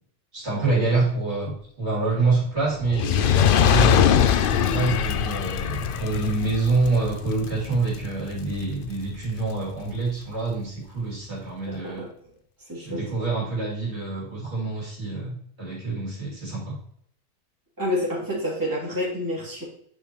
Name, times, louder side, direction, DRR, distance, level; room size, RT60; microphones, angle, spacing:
voice 1, 0.3-4.1 4.5-12.1 12.8-16.8, right 3 dB, 55° right, -6 dB, 3.2 m, -26 dB
Fire, 2.8-9.2 9.9-10.0, left 9 dB, 65° left, 0.5 m, -22 dB
voice 2, 11.7-12.1 12.7-13.0 17.8-19.6, left 1 dB, 15° right, -7 dB, 2.7 m, -28 dB
9.3 x 5.0 x 3.0 m, 0.67 s
omnidirectional pair, 1.4 m